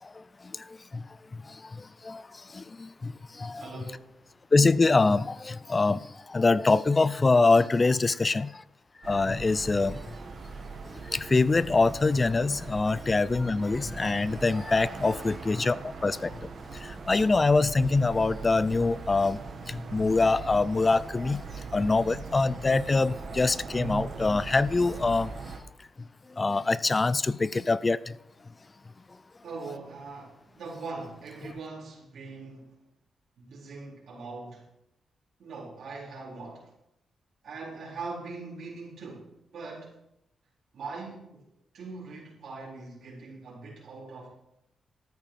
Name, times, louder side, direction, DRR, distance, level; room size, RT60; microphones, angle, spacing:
voice 1, 2.5-3.1 3.4-3.7 4.5-6.0 6.3-8.5 9.1-10.0 11.1-15.8 16.0-16.3 16.8-19.4 19.7-21.4 21.7-25.3 26.4-28.0, left 3 dB, 30° left, 0.5 m, -24 dB
voice 2, 3.6-4.2 8.3-8.4 29.4-32.7 33.4-34.6 35.4-36.7 37.4-40.0 40.7-41.4 41.7-44.3, right 3 dB, 75° right, 4.2 m, -41 dB
sound 1, 9.0-25.6, right 4 dB, 60° right, 2.0 m, -40 dB
13.5 x 9.0 x 5.8 m
cardioid pair, 75°, 0 cm